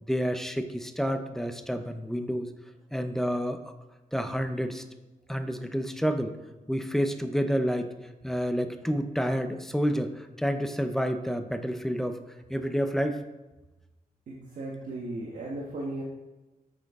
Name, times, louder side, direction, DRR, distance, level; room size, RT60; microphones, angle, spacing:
voice 1, 0.0-2.5 2.9-3.7 4.1-4.8 5.3-6.4 6.7-7.9 8.2-12.2 12.5-13.2, equal, 5° left, 7 dB, 0.5 m, -29 dB
voice 2, 14.3-16.0, right 2 dB, 70° right, -3 dB, 1.2 m, -36 dB
8.4 x 6.4 x 3.6 m, 1.1 s
wide cardioid pair, 170°, 14 cm